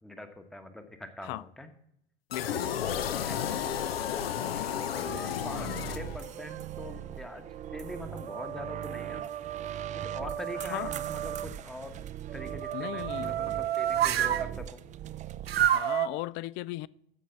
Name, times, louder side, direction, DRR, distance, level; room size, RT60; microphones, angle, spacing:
voice 1, 0.0-1.7 3.1-3.5 4.5-7.5 7.7-9.2 9.9-12.0 12.3-14.9, left 1 dB, ahead, 1.0 m, -43 dB
sound 1, 2.3-6.5, left 9 dB, 75° left, 0.8 m, -32 dB
voice 2, 2.3-3.0 10.6-10.9 12.7-13.3 15.6-16.9, left 18 dB, 40° left, 0.4 m, -37 dB
sound 2, 5.1-15.7, right 11 dB, 25° right, 0.5 m, -42 dB
sound 3, 6.1-6.9 7.5-11.5 12.3-14.5 15.5-16.1, right 11 dB, 80° right, 0.5 m, -31 dB
13.5 x 5.2 x 6.9 m
figure-of-eight pair, 85°, 30 cm